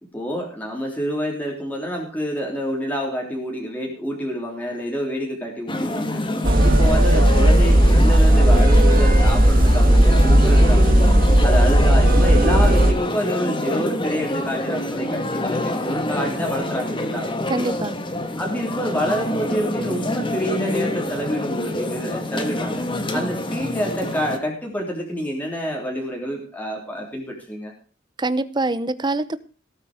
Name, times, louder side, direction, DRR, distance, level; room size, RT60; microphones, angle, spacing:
voice 1, 0.1-6.2 6.6-11.1 11.4-17.3 18.4-22.8 23.1-27.7, equal, 10° left, -1 dB, 3.4 m, -27 dB
sound 1, 5.7-24.4, left 1 dB, 25° left, 1.7 m, -26 dB
sound 2, 6.4-12.9, right 1 dB, 50° right, 1.5 m, -14 dB
voice 2, 17.5-18.0 23.1-23.4 28.2-29.4, right 2 dB, 25° right, 15 dB, 0.9 m, -25 dB
17.5 x 8.6 x 5.1 m, 0.38 s
head